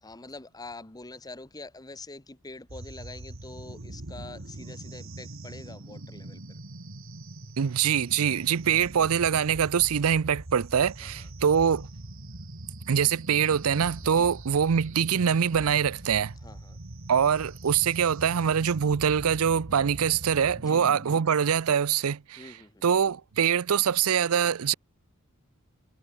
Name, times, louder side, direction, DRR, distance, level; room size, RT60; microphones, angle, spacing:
voice 1, 0.0-6.6 11.0-11.3 14.2-14.3 16.4-16.8 20.5-20.9 22.4-22.8, left 2 dB, 20° left, 1.2 m, -45 dB
sound 1, 2.7-21.3, right 2 dB, 65° right, 1.8 m, -42 dB
voice 2, 7.6-11.9 12.9-16.3 17.1-22.5 22.8-24.7, right 7 dB, 80° right, 0.5 m, -24 dB
head